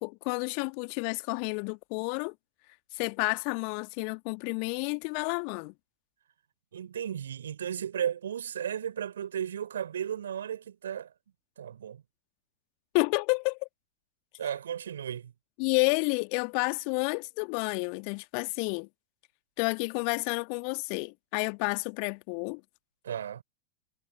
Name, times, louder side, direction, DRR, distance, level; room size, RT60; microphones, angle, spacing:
voice 1, 0.0-2.3 2.9-5.7 12.9-13.6 15.6-18.9 19.6-22.6, left 40 dB or more, 45° left, 1.6 m, -30 dB
voice 2, 6.7-11.1 11.6-12.0 14.4-15.3 23.0-23.4, right 9 dB, 65° right, 3.8 m, -34 dB
figure-of-eight pair, 90°, 0 cm